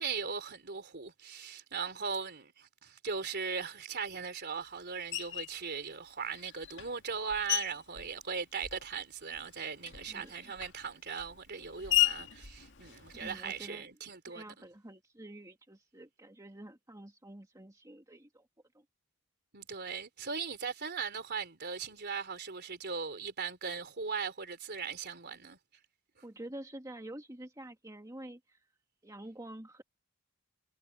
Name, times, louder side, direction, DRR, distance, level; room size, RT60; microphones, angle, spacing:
voice 1, 0.0-14.7 19.5-25.6, right 5 dB, 50° right, 3.6 m, -39 dB
Screech, 5.1-5.6 6.3-9.0 9.3-13.6, left 13 dB, 55° left, 1.9 m, -35 dB
voice 2, 10.1-10.5 13.1-13.9 14.3-18.5 18.7-18.8 26.2-28.6 29.0-29.8, right 1 dB, 15° right, 1.9 m, -48 dB
head